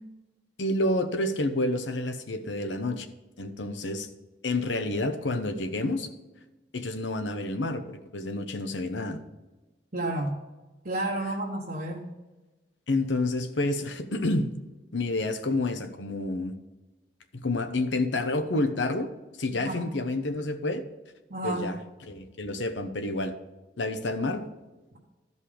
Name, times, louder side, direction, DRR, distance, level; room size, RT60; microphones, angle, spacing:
voice 1, 0.6-3.1 3.4-4.1 4.4-6.1 6.7-9.2 12.9-14.5 14.9-16.5 17.4-19.1 19.4-20.8 21.4-23.3 23.8-24.5, left 2 dB, 80° left, 9 dB, 0.9 m, -29 dB
voice 2, 9.9-10.4 10.8-12.0 19.6-19.8 21.3-21.7, right 1 dB, 50° right, -2 dB, 1.0 m, -31 dB
13.0 x 5.5 x 5.0 m, 1.1 s
head